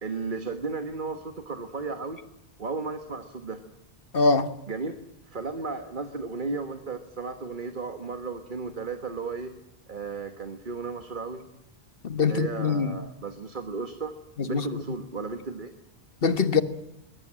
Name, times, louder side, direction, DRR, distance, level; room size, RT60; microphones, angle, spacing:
voice 1, 0.0-2.2 2.6-3.6 4.7-5.0 5.3-9.5 9.9-11.4 12.2-14.1 14.5-15.7, right 4 dB, 50° right, 1.6 m, -34 dB
voice 2, 4.1-4.5 12.0-13.0 14.4-14.6 16.2-16.6, left 4 dB, 60° left, 1.6 m, -23 dB
23.5 x 20.5 x 7.5 m
omnidirectional pair, 1.1 m